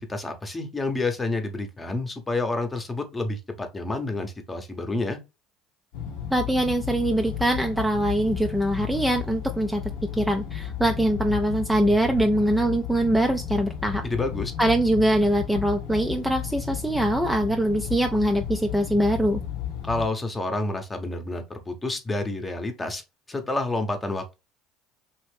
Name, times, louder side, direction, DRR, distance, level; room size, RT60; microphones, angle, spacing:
voice 1, 0.1-5.2 14.0-14.5 19.8-23.0 23.3-24.3, left 2 dB, 20° left, 0.9 m, -29 dB
sound 1, 5.9-20.1, left 9 dB, 75° left, 0.8 m, -33 dB
voice 2, 6.3-9.8 10.1-14.0 14.6-19.4, right 1 dB, 5° right, 0.4 m, -23 dB
3.0 x 2.5 x 3.4 m
hypercardioid pair, 75°, 0 cm